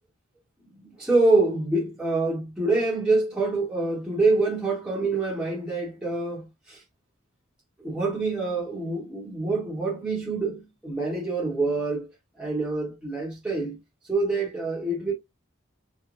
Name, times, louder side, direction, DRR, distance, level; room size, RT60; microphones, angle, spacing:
voice 1, 1.0-6.8 7.8-12.1 12.4-13.8 14.1-15.1, right 3 dB, 5° right, 1.0 m, -26 dB
3.1 x 2.1 x 2.5 m
head